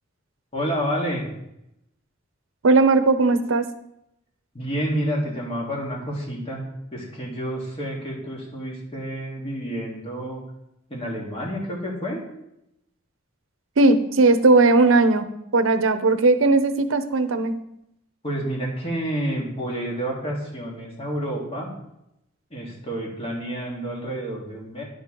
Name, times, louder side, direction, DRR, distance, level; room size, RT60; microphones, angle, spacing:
voice 1, 0.5-1.3 4.5-6.6 6.9-10.4 10.9-12.2 18.2-21.7 22.5-24.8, equal, 30° left, -2 dB, 1.9 m, -29 dB
voice 2, 2.6-3.7 13.8-15.3 15.5-17.5, right 3 dB, 75° right, 10 dB, 0.7 m, -17 dB
10.0 x 6.3 x 3.8 m, 0.83 s
head